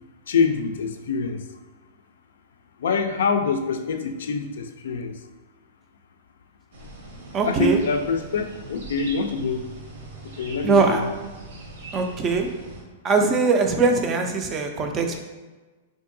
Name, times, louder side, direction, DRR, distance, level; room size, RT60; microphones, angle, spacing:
voice 1, 0.3-1.4 2.8-5.2 7.4-9.7 10.2-11.0, left 5 dB, 85° left, 7 dB, 0.3 m, -25 dB
sound 1, 6.7-12.8, right 2 dB, 80° right, 0.8 m, -41 dB
voice 2, 7.3-7.8 10.6-11.0 11.9-12.5 13.0-15.2, right 4 dB, 20° right, 4 dB, 0.3 m, -21 dB
3.5 x 2.6 x 2.6 m, 1.3 s
supercardioid pair, 155°, 0 cm